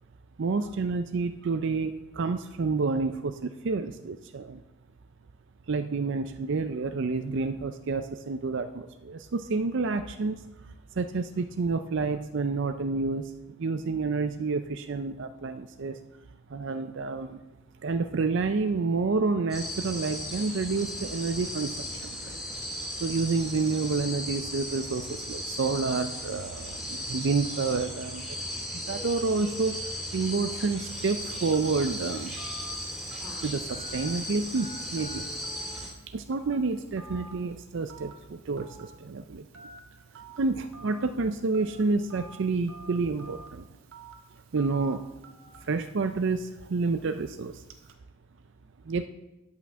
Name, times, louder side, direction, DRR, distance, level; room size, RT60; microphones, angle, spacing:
voice 1, 0.4-4.6 5.7-10.5 11.0-13.3 13.6-16.0 16.5-17.4 17.8-21.8 22.0-22.4 23.0-28.4 28.7-32.3 33.4-35.3 36.1-39.4 40.1-43.7 44.5-45.0 45.6-47.6 48.9-49.1, right 4 dB, 55° right, 9 dB, 0.5 m, -29 dB
sound 1, 19.5-35.9, equal, ahead, 2.5 m, -36 dB
Telephone, 30.9-47.9, right 2 dB, 80° right, 1.3 m, -51 dB
11.0 x 5.8 x 7.2 m, 1.0 s
head